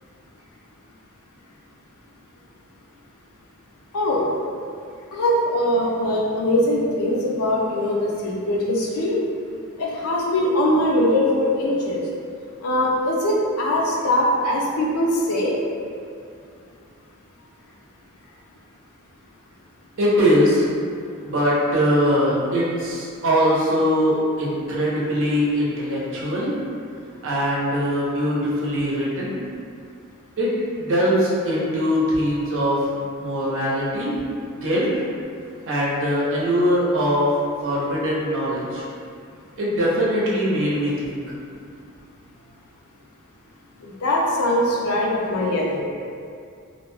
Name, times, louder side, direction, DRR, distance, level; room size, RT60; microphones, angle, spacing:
voice 1, 3.9-4.3 5.1-9.1 9.8-12.0 12.6-15.5 44.0-45.8, left 1 dB, 80° left, -2 dB, 0.5 m, -21 dB
voice 2, 20.0-20.6 21.2-26.5 27.2-29.4 30.4-30.5 30.8-32.8 33.2-34.1 34.6-34.9 35.7-37.3 37.6-38.8 39.6-41.2, equal, 60° right, -6 dB, 0.7 m, -21 dB
2.5 x 2.1 x 3.1 m, 2.4 s
head